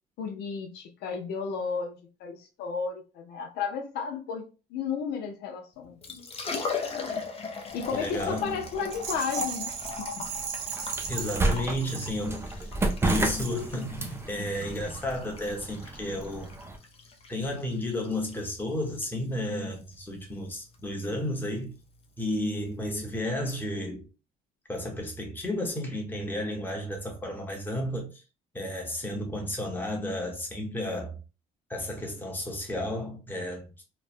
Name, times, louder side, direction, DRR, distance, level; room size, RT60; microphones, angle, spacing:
voice 1, 0.2-6.3 7.7-10.3, left 5 dB, 75° left, 0.6 m, -33 dB
Liquid, 5.8-23.2, left 4 dB, 35° left, 0.6 m, -40 dB
sound 1, 7.7-16.8, right 2 dB, 15° right, 0.4 m, -33 dB
voice 2, 7.9-8.6 11.1-12.7 13.0-16.5 17.3-21.7 22.2-24.0 24.7-28.2 28.5-31.2 31.7-33.8, left 1 dB, 10° left, 0.9 m, -32 dB
Rattle, 8.9-12.5 13.0-13.7, right 7 dB, 90° right, 0.6 m, -37 dB
3.1 x 2.2 x 2.4 m
cardioid pair, 110°, 17 cm